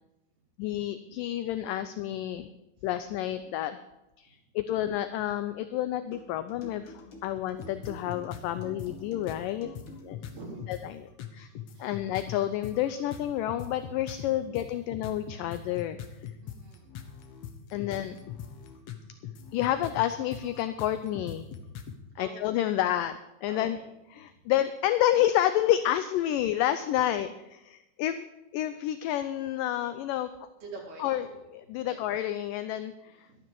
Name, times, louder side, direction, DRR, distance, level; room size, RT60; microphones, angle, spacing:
voice 1, 0.6-2.5 2.8-3.8 4.2-6.9 7.2-9.7 10.0-10.2 10.7-11.1 11.3-11.5 11.8-16.0 17.7-18.2 19.5-21.5 22.2-23.1 23.4-23.8 24.1-28.3 28.5-30.3 31.0-33.2, left 12 dB, 80° left, 11 dB, 2.0 m, -29 dB
sound 1, 6.1-10.4, left 1 dB, 40° left, 2.2 m, -49 dB
sound 2, 7.6-8.9 9.3-9.4 9.8-10.8 11.2-22.0, left 9 dB, 65° left, 1.8 m, -41 dB
voice 2, 10.2-10.6 11.4-11.5 11.7-11.9 16.4-16.9 22.2-22.4 23.5-23.9 30.6-31.3 31.8-32.0 33.0-33.4, right 3 dB, 85° right, -3 dB, 5.5 m, -45 dB
12.5 x 12.0 x 5.4 m, 0.94 s
omnidirectional pair, 4.3 m